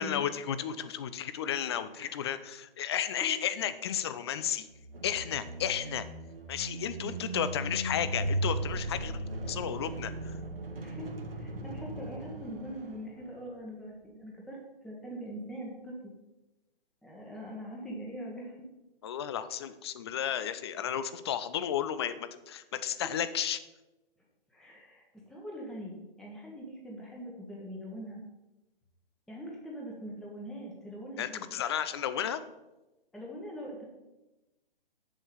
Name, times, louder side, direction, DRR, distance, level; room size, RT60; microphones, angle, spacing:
voice 1, 0.0-4.7 5.0-6.1 6.5-10.4 19.0-23.6 31.2-32.4, left 9 dB, 30° left, 13 dB, 0.5 m, -33 dB
sound 1, 4.7-13.5, right 1 dB, 70° right, 1.7 m, -37 dB
voice 2, 11.3-14.6 14.8-15.9 17.0-18.6 24.5-25.0 25.3-28.2 29.3-31.5 33.1-33.8, equal, ahead, -3 dB, 1.2 m, -42 dB
7.3 x 7.1 x 6.9 m, 1.0 s
figure-of-eight pair, 135°, 29 cm